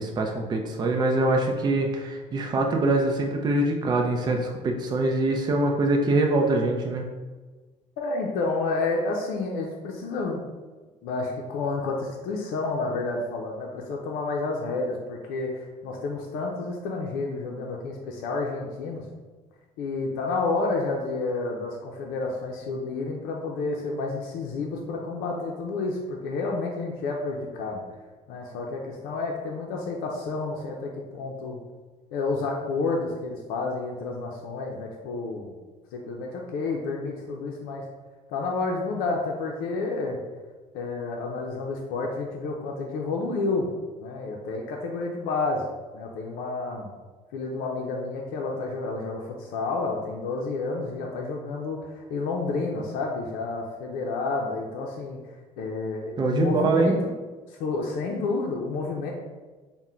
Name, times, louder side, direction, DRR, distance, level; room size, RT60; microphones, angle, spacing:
voice 1, 0.0-7.0 56.2-56.9, right 2 dB, 30° right, 2 dB, 0.4 m, -24 dB
voice 2, 8.0-10.4 11.0-19.1 19.8-27.8 28.3-31.6 32.1-35.6 35.9-37.9 38.3-40.2 40.7-43.7 44.0-45.7 45.9-46.9 47.3-55.2 55.6-56.9 57.5-59.1, left 3 dB, 85° left, 0 dB, 0.5 m, -30 dB
3.7 x 2.1 x 4.2 m, 1.3 s
cardioid pair, 115°, 15 cm